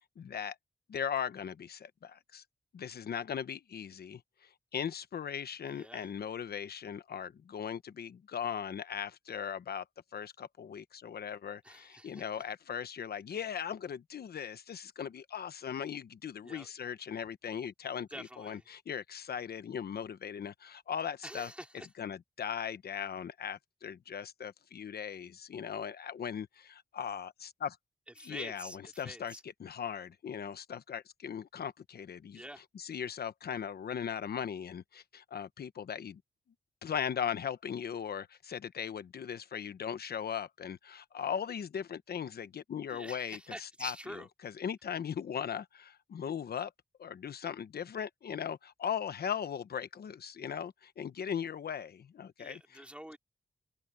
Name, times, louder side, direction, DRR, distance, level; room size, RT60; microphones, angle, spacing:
voice 1, 0.2-0.6 0.9-2.4 2.7-9.8 10.1-21.5 22.0-27.8 28.2-32.4 32.7-36.2 36.8-43.9 44.4-46.7 47.0-52.8, left 8 dB, 85° left, 1.0 m, -38 dB
voice 2, 5.7-6.1 11.6-12.4 16.4-16.7 18.1-18.6 21.2-21.9 28.2-29.4 32.3-32.6 42.9-44.3 52.4-53.2, equal, 5° right, 2.8 m, -46 dB
wide cardioid pair, 145°, 16 cm